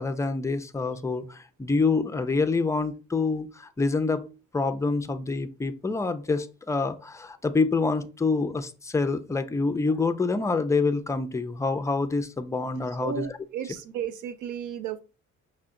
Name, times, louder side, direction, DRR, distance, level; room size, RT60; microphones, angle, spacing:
voice 1, 0.0-4.2 4.5-13.2, left 3 dB, 10° left, 0.4 m, -26 dB
voice 2, 13.0-15.0, right 9 dB, 75° right, 0.6 m, -33 dB
5.6 x 2.1 x 3.7 m
cardioid pair, 90°, 30 cm